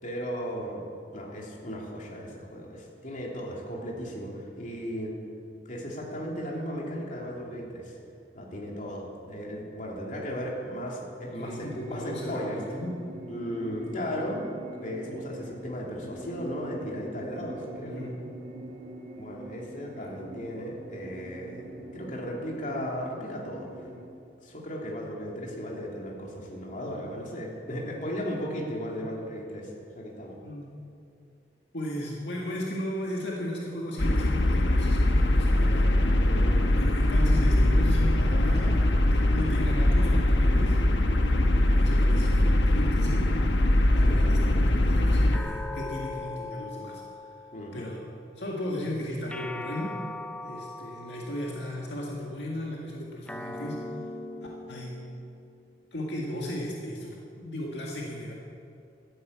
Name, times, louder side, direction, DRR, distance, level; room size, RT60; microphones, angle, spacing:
voice 1, 0.0-0.8 1.1-5.1 5.6-8.0 8.3-12.6 13.3-14.5 14.8-18.0 19.1-23.7 24.4-30.4 35.6-35.7 36.2-36.6 44.0-44.1 47.5-47.9, equal, 45° left, -2 dB, 2.8 m, -36 dB
voice 2, 11.2-13.0 17.8-18.1 20.0-20.1 30.4-30.7 31.7-35.9 36.7-40.8 41.4-43.3 43.9-47.3 47.7-48.0 48.4-49.9 50.4-53.8 54.7-54.9 55.9-58.3, left 1 dB, 75° left, -2 dB, 1.9 m, -36 dB
sound 1, 11.3-24.0, right 1 dB, 70° right, 3.8 m, -43 dB
sound 2, 34.0-45.4, left 1 dB, 90° left, 1.1 m, -22 dB
sound 3, 45.3-47.9 49.3-51.8 53.3-55.9, left 2 dB, 5° left, 0.6 m, -40 dB
13.0 x 9.5 x 8.5 m, 2.5 s
head